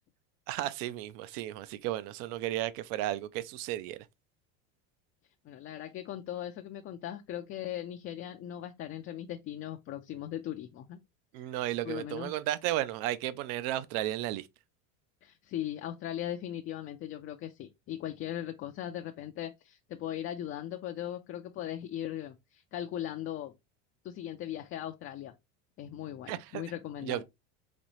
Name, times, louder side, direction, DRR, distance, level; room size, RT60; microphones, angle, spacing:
voice 1, 0.5-4.0 11.3-14.5 26.3-26.6 27.0-27.2, right 14 dB, 60° right, 0.6 m, -34 dB
voice 2, 5.4-11.0 11.4-11.5 11.8-12.3 15.2-23.5 24.0-25.3 25.8-27.2, left 11 dB, 35° left, 0.4 m, -39 dB
4.2 x 3.0 x 3.0 m
supercardioid pair, 115°, 40 cm